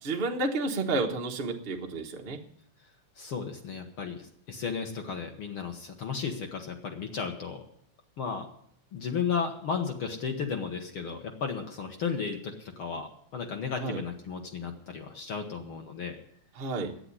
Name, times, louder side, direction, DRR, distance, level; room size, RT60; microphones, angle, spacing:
voice 1, 0.0-2.4 13.8-14.0 16.6-16.9, right 3 dB, 80° right, 2 dB, 0.5 m, -31 dB
voice 2, 3.1-7.6 8.2-8.5 8.9-16.2, left 6 dB, 55° left, 3 dB, 1.7 m, -34 dB
10.5 x 8.7 x 9.6 m, 0.67 s
omnidirectional pair, 3.3 m